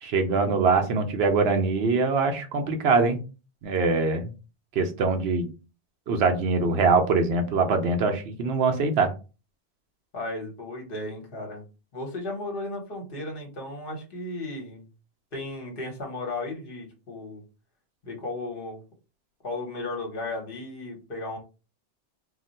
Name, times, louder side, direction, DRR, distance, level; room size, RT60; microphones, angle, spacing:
voice 1, 0.0-3.2 3.6-4.3 4.8-5.5 6.1-9.1, right 4 dB, 70° right, 6 dB, 0.8 m, -23 dB
voice 2, 10.1-11.6 11.9-14.8 15.3-17.4 18.0-18.8 19.4-21.4, left 2 dB, 55° left, 2 dB, 1.1 m, -35 dB
2.4 x 2.1 x 3.9 m, 0.32 s
omnidirectional pair, 1.2 m